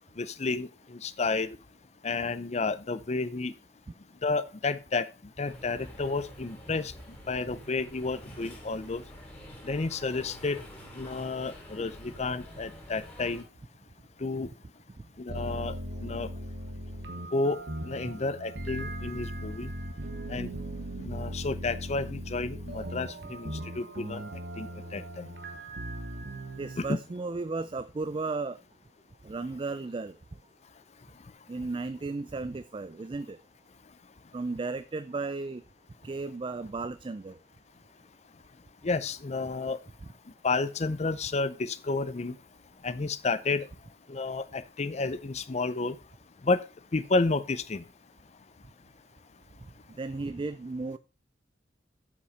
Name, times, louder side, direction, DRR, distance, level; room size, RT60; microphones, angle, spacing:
voice 1, 0.2-1.5 2.0-3.5 4.2-5.1 5.4-6.9 7.3-9.0 9.6-10.6 11.0-13.4 14.2-14.5 15.2-15.7 16.0-16.3 17.3-17.6 17.8-19.7 20.3-20.6 21.0-24.2 24.6-25.3 26.8-26.9 38.8-39.8 40.4-42.4 42.8-43.7 44.1-46.0 46.4-46.6 46.9-47.8, left 3 dB, 40° left, 13 dB, 0.6 m, -31 dB
sound 1, 5.4-13.4, equal, 10° left, 3.1 m, -47 dB
sound 2, 15.3-26.8, right 1 dB, 90° right, 1.4 m, -38 dB
voice 2, 26.6-28.6 29.2-30.1 31.5-33.4 34.3-35.6 36.0-37.4 50.0-51.0, right 3 dB, 30° right, 13 dB, 0.4 m, -34 dB
8.1 x 5.7 x 5.3 m, 0.32 s
head